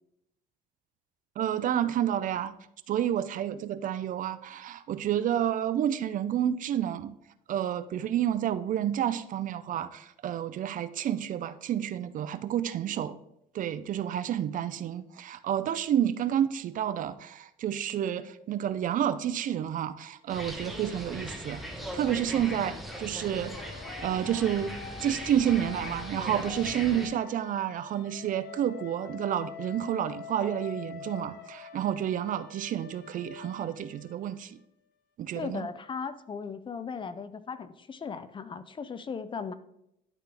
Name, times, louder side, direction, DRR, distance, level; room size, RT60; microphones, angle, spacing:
voice 1, 1.4-2.5 2.9-7.2 7.5-13.2 13.5-21.6 21.9-23.5 23.9-34.6 35.2-35.7, right 10 dB, 50° right, 13 dB, 0.5 m, -30 dB
sound 1, 20.3-27.1, equal, ahead, 1.2 m, -39 dB
sound 2, 22.8-34.7, left 7 dB, 75° left, 0.8 m, -46 dB
voice 2, 35.4-39.5, left 5 dB, 30° left, 13 dB, 0.5 m, -37 dB
11.5 x 3.8 x 3.4 m, 0.79 s
cardioid pair, 110°, 17 cm